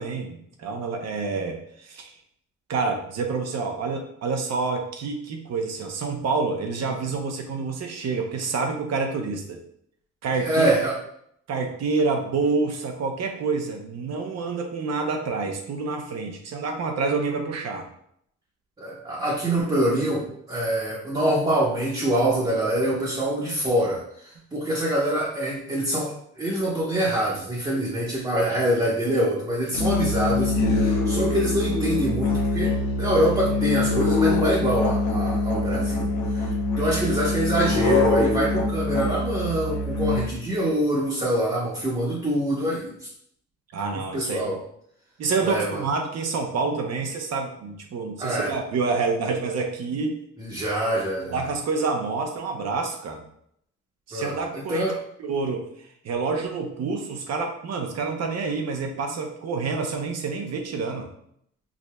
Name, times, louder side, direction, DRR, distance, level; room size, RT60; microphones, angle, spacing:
voice 1, 0.0-2.1 2.7-9.6 10.2-10.7 11.5-17.9 36.8-37.0 43.7-44.6 45.2-50.2 51.3-53.2 54.1-54.9 55.2-55.6 56.0-61.1, right 4 dB, 60° right, 4 dB, 0.7 m, -28 dB
voice 2, 10.3-10.9 18.8-42.9 44.1-44.6 45.4-45.8 48.2-48.5 50.4-51.4 54.1-55.0, right 1 dB, 15° right, -7 dB, 0.9 m, -25 dB
Musical instrument, 29.7-40.5, left 3 dB, 75° left, 0.8 m, -24 dB
4.9 x 2.5 x 2.2 m, 0.70 s
cardioid pair, 90°, 30 cm